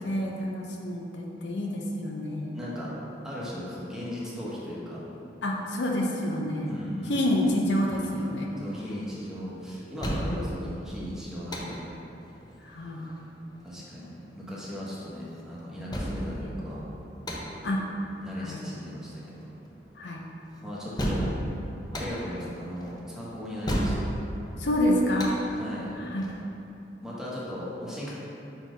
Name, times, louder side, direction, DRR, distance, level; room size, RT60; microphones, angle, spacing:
voice 1, 0.0-2.6 5.4-6.8 7.1-8.5 10.2-10.5 12.6-13.2 17.6-17.8 18.4-18.6 20.0-20.2 22.4-22.5 24.6-25.3 26.1-26.3, left 1 dB, 75° left, -1 dB, 0.7 m, -28 dB
voice 2, 2.5-2.9 3.2-5.0 6.7-7.4 8.6-11.8 13.6-16.8 18.2-19.4 20.6-21.4 21.9-24.1 25.5-25.9 27.0-28.1, equal, 5° right, -7 dB, 1.1 m, -37 dB
sound 1, 7.2-26.4, equal, 25° left, 0.7 m, -36 dB
4.9 x 4.4 x 5.0 m, 3.0 s
head